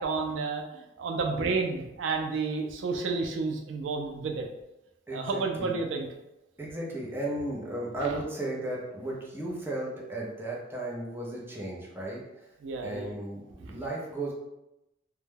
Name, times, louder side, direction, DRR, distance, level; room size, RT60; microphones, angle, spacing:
voice 1, 0.0-4.5 5.1-6.1 8.0-8.2 12.6-13.1 13.6-13.8, right 4 dB, 80° right, 3 dB, 0.4 m, -31 dB
voice 2, 5.1-5.8 6.6-12.4 12.8-14.3, right 1 dB, 10° right, -4 dB, 0.5 m, -35 dB
2.2 x 2.1 x 3.2 m, 0.91 s
head